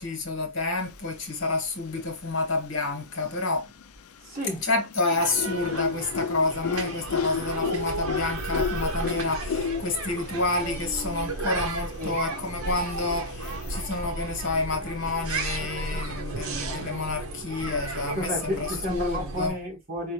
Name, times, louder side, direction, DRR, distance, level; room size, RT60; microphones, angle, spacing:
voice 1, 0.0-3.7 4.6-19.5, left 3 dB, 60° left, 1.8 m, -29 dB
sound 1, 1.1-1.6 1.9-3.9 4.3-10.3 10.6-10.7 10.8-10.9 11.5-13.8, left 5 dB, 90° left, 0.5 m, -33 dB
voice 2, 4.2-4.6 12.0-12.2 18.1-20.1, equal, 45° right, 2.1 m, -32 dB
sound 2, 5.2-19.5, right 2 dB, 75° right, 1.0 m, -34 dB
5.2 x 3.1 x 3.3 m
head